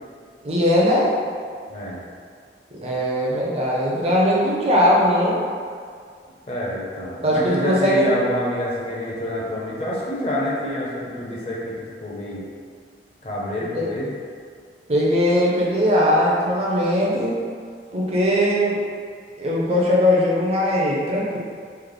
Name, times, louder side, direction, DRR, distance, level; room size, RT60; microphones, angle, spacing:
voice 1, 0.4-1.1 2.8-5.4 7.2-8.1 13.7-13.9 14.9-17.4 17.9-18.8 19.4-21.4, equal, 35° right, -5 dB, 0.6 m, -19 dB
voice 2, 1.7-2.0 6.5-11.8 12.0-12.5 13.2-14.2, left 1 dB, 35° left, -6 dB, 0.6 m, -27 dB
3.2 x 2.0 x 3.7 m, 2.1 s
head